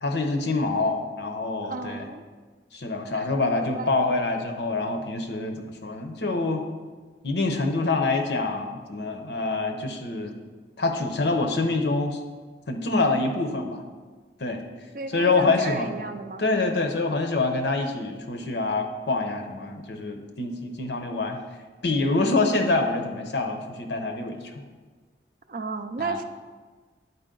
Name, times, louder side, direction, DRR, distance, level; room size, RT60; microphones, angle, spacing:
voice 1, 0.0-2.0 2.7-6.6 7.2-10.4 10.8-12.2 12.7-13.8 14.4-14.6 15.1-15.9 16.4-21.4 21.8-24.6 26.0-26.2, left 3 dB, 70° left, 5 dB, 0.8 m, -26 dB
voice 2, 1.6-2.2 3.1-3.9 14.9-16.4 25.5-26.2, right 4 dB, 45° right, 8 dB, 0.4 m, -34 dB
9.7 x 4.5 x 3.8 m, 1.4 s
head